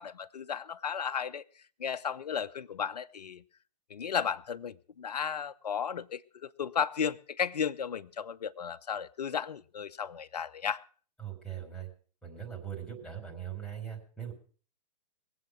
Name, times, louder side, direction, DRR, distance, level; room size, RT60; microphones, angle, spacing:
voice 1, 0.0-1.4 1.8-3.4 3.9-10.8, left 7 dB, 70° left, 0.8 m, -34 dB
voice 2, 11.2-11.9 12.2-14.3, right 9 dB, ahead, 4.2 m, -40 dB
21.5 x 8.1 x 6.2 m
figure-of-eight pair, 120°, 21 cm